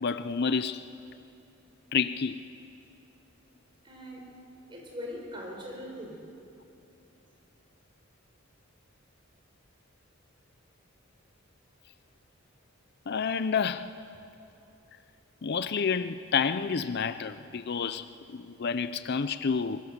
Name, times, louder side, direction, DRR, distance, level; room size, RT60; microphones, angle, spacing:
voice 1, 0.0-0.8 1.9-2.4 13.1-13.9 15.4-19.8, left 6 dB, 50° left, 0.5 m, -29 dB
voice 2, 3.8-4.3 4.7-6.3, left 1 dB, 25° right, 4.6 m, -41 dB
22.5 x 22.5 x 6.7 m
head